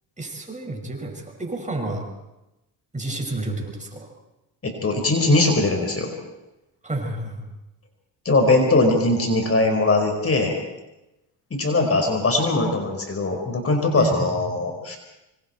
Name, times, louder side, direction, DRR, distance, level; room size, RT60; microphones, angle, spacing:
voice 1, 0.2-2.1 2.9-4.1 6.8-7.4 14.0-14.4, right 2 dB, 20° right, 1 dB, 6.1 m, -30 dB
voice 2, 4.6-6.1 8.2-10.5 11.5-15.0, left 2 dB, 35° left, 3 dB, 4.9 m, -20 dB
25.5 x 25.0 x 4.5 m, 0.95 s
supercardioid pair, 75°, 38 cm